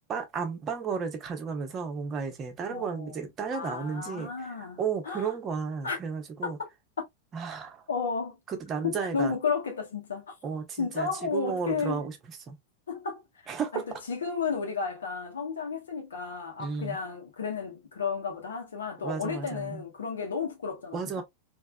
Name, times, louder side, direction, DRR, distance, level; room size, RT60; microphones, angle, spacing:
voice 1, 0.1-6.6 7.3-7.8 8.5-9.3 10.4-12.6 13.5-13.8 16.6-17.0 19.0-19.8 20.9-21.2, right 6 dB, 30° right, 0.9 m, -33 dB
voice 2, 2.7-3.2 3.5-5.3 5.8-6.0 6.4-6.7 7.0-7.1 7.9-8.4 8.8-10.3 10.8-12.0 12.9-21.2, left 5 dB, 70° left, 1.1 m, -33 dB
3.4 x 2.6 x 2.2 m
figure-of-eight pair, 90°, 0 cm